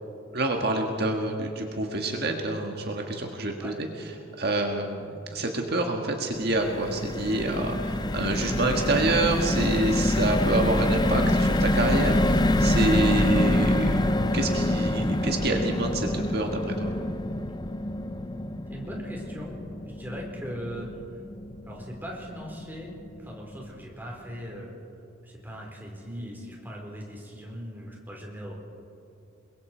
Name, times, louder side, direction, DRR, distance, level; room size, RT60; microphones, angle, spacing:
voice 1, 0.3-4.1 4.4-16.9, right 2 dB, 55° right, 2 dB, 1.6 m, -27 dB
sound 1, 6.3-22.6 23.0-23.2 23.4-23.7, left 1 dB, 20° left, 0.7 m, -26 dB
voice 2, 18.7-19.6 19.9-21.2 21.7-24.7 25.2-28.5, equal, 10° right, -2 dB, 3.9 m, -39 dB
29.0 x 22.0 x 4.5 m, 2.7 s
head